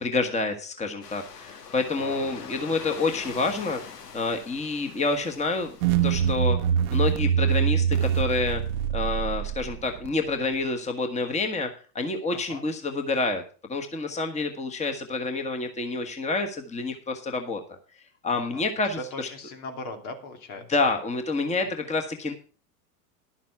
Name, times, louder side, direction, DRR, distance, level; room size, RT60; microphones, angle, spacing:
voice 1, 0.0-3.8 4.1-5.7 6.0-6.6 6.9-8.6 8.9-13.4 13.7-17.8 18.2-19.3 20.7-22.3, left 3 dB, 15° left, 5 dB, 1.4 m, -28 dB
sound 1, 1.0-6.2, left 6 dB, 85° left, 1.6 m, -43 dB
sound 2, 5.8-10.1, right 8 dB, 65° right, 0.8 m, -24 dB
voice 2, 18.3-18.7 19.0-20.9, left 2 dB, 65° left, 5 dB, 2.9 m, -39 dB
11.0 x 7.4 x 5.8 m, 0.38 s
hypercardioid pair, 100°, 46 cm